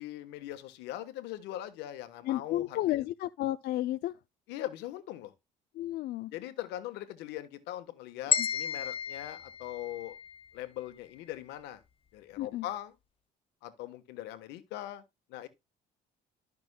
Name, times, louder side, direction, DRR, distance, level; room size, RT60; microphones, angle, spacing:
voice 1, 0.0-3.0 4.5-5.3 6.3-10.2 10.5-11.8 12.1-12.9 13.6-15.0 15.3-15.5, left 13 dB, 90° left, 1.2 m, -41 dB
voice 2, 2.3-4.2 5.8-6.3 8.4-8.5 12.4-12.6, left 15 dB, 70° left, 0.4 m, -32 dB
sound 1, 8.3-10.5, left 7 dB, 35° left, 0.7 m, -32 dB
12.5 x 6.0 x 2.2 m
cardioid pair, 110°, 17 cm